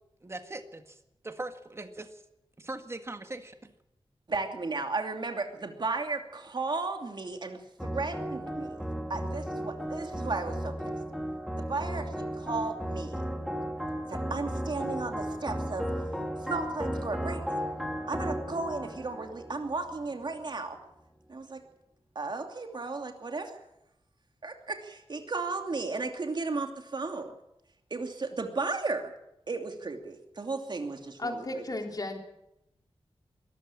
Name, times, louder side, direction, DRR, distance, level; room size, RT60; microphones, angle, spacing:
voice 1, 0.2-2.2 2.6-3.7, right 2 dB, 25° right, 7 dB, 1.8 m, -41 dB
voice 2, 4.3-8.8 9.1-10.9 11.6-13.2 14.1-15.9 16.4-17.6 18.1-20.8 21.3-21.6 22.1-23.5 24.4-27.3 27.9-29.1 29.5-31.6, right 3 dB, 45° right, 4 dB, 2.8 m, -34 dB
sound 1, 7.8-20.3, equal, ahead, 3.0 m, -35 dB
voice 3, 30.9-32.2, left 2 dB, 40° left, 3 dB, 3.6 m, -35 dB
22.0 x 13.5 x 8.8 m, 0.88 s
wide cardioid pair, 105°, 10 cm